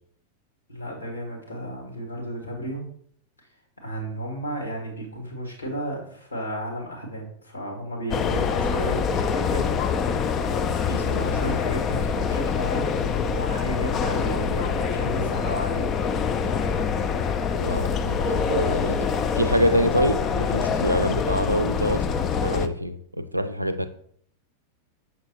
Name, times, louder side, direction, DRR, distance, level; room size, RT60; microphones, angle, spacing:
voice 1, 0.7-2.8 3.8-9.7 10.3-10.4 10.8-13.0 13.2-15.9, right 1 dB, 85° left, -1 dB, 1.7 m, -33 dB
sound 1, 8.1-22.7, left 6 dB, 30° left, 0.3 m, -25 dB
voice 2, 17.6-19.1 19.3-22.0 22.4-23.9, equal, 90° right, 9 dB, 0.4 m, -25 dB
6.2 x 5.9 x 2.8 m, 0.63 s
figure-of-eight pair, 90°, 0 cm